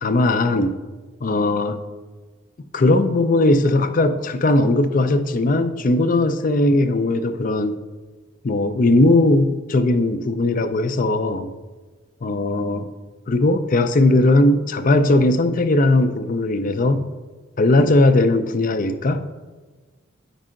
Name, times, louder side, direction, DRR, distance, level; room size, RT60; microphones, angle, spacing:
voice 1, 0.0-0.8 1.2-1.8 2.7-7.8 8.4-11.5 12.2-12.9 13.3-17.1 17.6-19.4, left 2 dB, 45° left, 10 dB, 0.5 m, -18 dB
8.4 x 5.4 x 3.7 m, 1.3 s
head